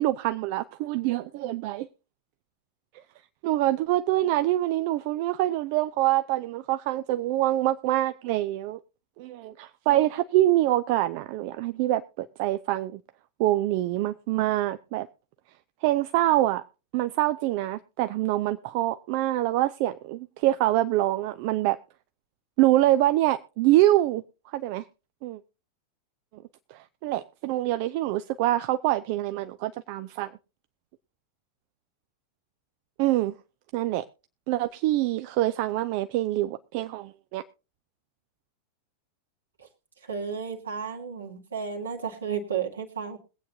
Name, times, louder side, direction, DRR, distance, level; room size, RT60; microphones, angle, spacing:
voice 1, 0.0-1.9 3.4-8.8 9.2-13.0 13.4-15.1 15.8-16.6 16.9-21.8 22.6-24.8 25.2-25.4 26.3-26.4 26.7-30.3 33.0-33.3 33.7-34.0 34.5-37.4, right 15 dB, 45° right, 0.5 m, -25 dB
voice 2, 40.0-43.2, right 6 dB, 70° right, 2.0 m, -33 dB
22.0 x 8.4 x 2.7 m
figure-of-eight pair, 90°, 0 cm